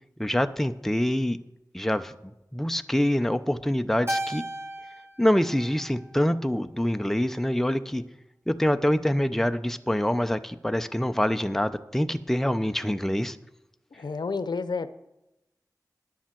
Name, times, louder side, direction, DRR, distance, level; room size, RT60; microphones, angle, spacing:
voice 1, 0.2-1.4 1.7-2.1 2.5-4.4 5.2-8.0 8.5-13.4, left 1 dB, 5° left, 10 dB, 0.7 m, -25 dB
Keyboard (musical), 4.1-6.6, right 1 dB, 35° right, 1.3 m, -35 dB
voice 2, 13.9-14.9, left 4 dB, 85° left, 12 dB, 0.6 m, -30 dB
10.5 x 7.2 x 7.5 m, 0.92 s
wide cardioid pair, 50°, 7 cm